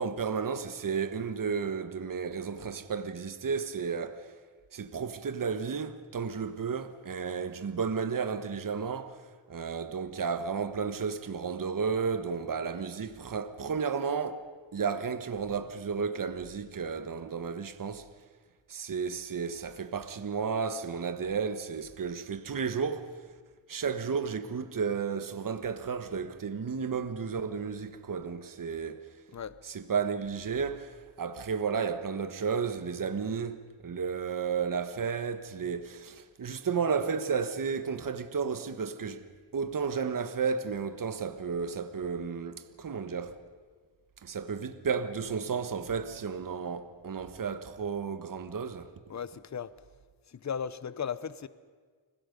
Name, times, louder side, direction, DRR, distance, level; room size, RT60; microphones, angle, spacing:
voice 1, 0.0-4.2 4.7-9.2 9.5-18.1 18.7-23.1 23.7-29.0 29.7-39.2 39.5-43.4 44.2-48.9, right 6 dB, 45° right, 1.3 m, -33 dB
voice 2, 49.1-49.7 50.3-51.5, left 7 dB, 35° left, 0.9 m, -36 dB
29.5 x 20.5 x 5.3 m
cardioid pair, 85°, 47 cm